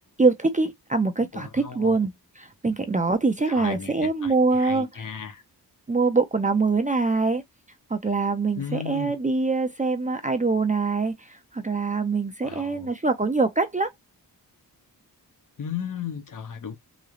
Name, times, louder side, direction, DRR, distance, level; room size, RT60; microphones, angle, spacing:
voice 1, 0.2-2.1 2.6-4.9 5.9-7.4 7.9-13.9, right 3 dB, 20° right, 0.5 m, -24 dB
voice 2, 1.3-2.0 3.5-5.4 8.6-9.2 12.4-12.9 15.6-16.8, left 7 dB, 55° left, 0.8 m, -35 dB
3.8 x 3.2 x 2.4 m
wide cardioid pair, 165°, 38 cm